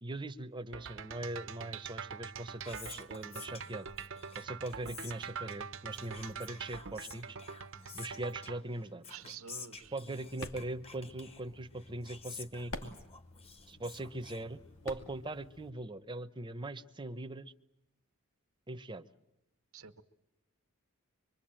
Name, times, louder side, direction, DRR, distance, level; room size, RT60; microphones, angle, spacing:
voice 1, 0.0-3.9 4.4-7.4 7.9-9.0 9.9-13.0 13.7-17.5 18.7-19.0, right 2 dB, 20° right, 9 dB, 0.9 m, -41 dB
sound 1, 0.7-8.6, right 6 dB, 60° right, 1.0 m, -44 dB
Whispering, 2.2-15.0, left 4 dB, 30° left, 1.4 m, -52 dB
voice 2, 9.1-9.9 19.7-20.0, right 7 dB, 85° right, 10 dB, 1.5 m, -49 dB
sound 2, 9.8-15.7, left 2 dB, 65° left, 2.7 m, -50 dB
25.5 x 24.0 x 8.9 m, 0.89 s
head